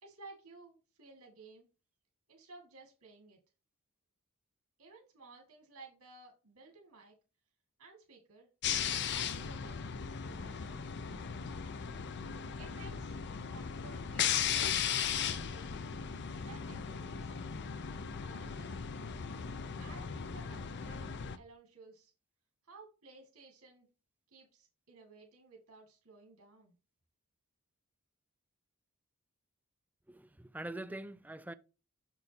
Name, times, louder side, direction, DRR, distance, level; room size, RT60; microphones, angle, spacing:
voice 1, 0.0-1.7 2.3-3.4 4.8-7.2 7.8-8.5 9.1-9.9 10.2-10.8 12.6-13.1 13.5-15.8 16.4-17.3 18.2-18.9 19.8-22.1 22.6-23.9 24.3-26.7, right 3 dB, 85° right, 2.0 m, -56 dB
sound 1, 8.6-21.4, left 8 dB, 50° left, 0.5 m, -37 dB
voice 2, 30.1-31.5, right 1 dB, 5° right, 0.3 m, -44 dB
6.6 x 6.1 x 2.8 m
head